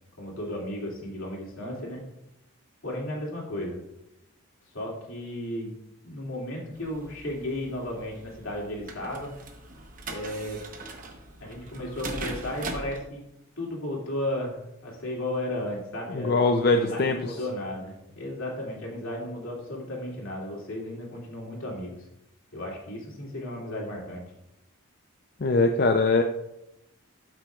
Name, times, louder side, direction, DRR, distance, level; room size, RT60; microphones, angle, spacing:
voice 1, 0.2-2.0 2.8-3.8 4.7-5.7 6.0-9.3 10.1-10.6 11.4-13.2 13.6-22.1 22.5-24.3, left 1 dB, 70° left, -2 dB, 2.6 m, -34 dB
sound 1, 6.7-13.0, right 2 dB, 40° right, 0.9 m, -40 dB
voice 2, 16.1-17.2 25.4-26.2, left 3 dB, 45° left, 5 dB, 0.4 m, -22 dB
12.5 x 6.0 x 2.4 m, 0.87 s
head